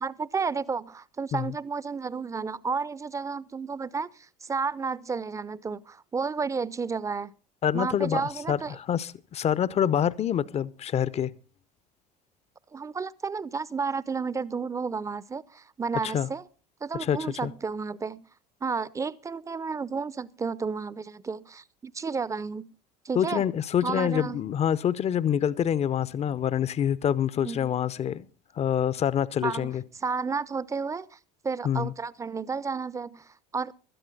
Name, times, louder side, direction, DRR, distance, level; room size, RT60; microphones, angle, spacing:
voice 1, 0.0-7.3 7.7-8.8 12.7-16.5 16.8-18.3 18.6-22.7 23.0-23.4 23.8-24.5 27.4-27.7 29.4-31.2 31.4-33.7, right 5 dB, 15° right, 0.7 m, -32 dB
voice 2, 7.6-11.3 16.0-16.3 17.0-17.5 23.1-28.3 28.6-29.8 31.6-31.9, left 9 dB, 30° left, 0.7 m, -26 dB
17.0 x 13.0 x 4.0 m
figure-of-eight pair, 70°, 21 cm